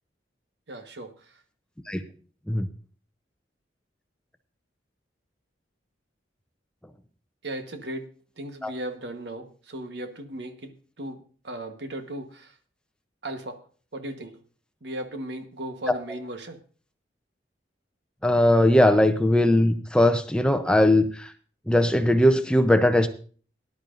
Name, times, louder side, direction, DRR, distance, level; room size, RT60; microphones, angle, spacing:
voice 1, 0.7-1.4 7.4-8.1 8.4-12.6 13.2-13.6 13.9-14.4 14.8-16.6, right 1 dB, 65° right, 7 dB, 1.2 m, -36 dB
voice 2, 18.2-21.3 21.7-23.1, left 1 dB, 5° left, 8 dB, 0.6 m, -19 dB
18.5 x 11.0 x 2.6 m, 0.41 s
head